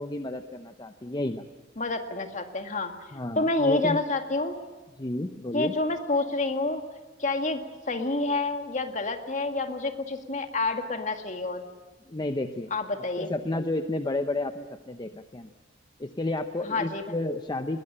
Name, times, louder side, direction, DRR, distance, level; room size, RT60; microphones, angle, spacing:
voice 1, 0.0-1.4 3.1-4.0 5.0-5.7 12.1-12.7 13.2-15.5 16.0-17.8, left 2 dB, 25° left, 8 dB, 0.7 m, -31 dB
voice 2, 1.8-4.5 5.5-6.8 7.2-7.6 7.9-11.7 12.7-13.3 16.6-17.0, left 2 dB, 40° left, 6 dB, 2.0 m, -28 dB
21.0 x 20.0 x 8.8 m, 1.3 s
head